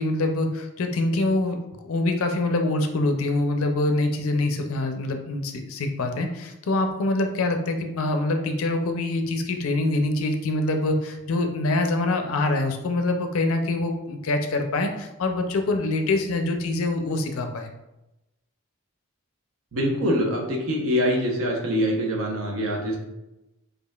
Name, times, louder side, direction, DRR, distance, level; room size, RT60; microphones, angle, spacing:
voice 1, 0.0-1.6 1.8-17.7, left 2 dB, 70° left, 5 dB, 0.5 m, -25 dB
voice 2, 19.7-23.0, equal, 70° right, 0 dB, 0.8 m, -24 dB
4.9 x 2.4 x 2.3 m, 0.95 s
head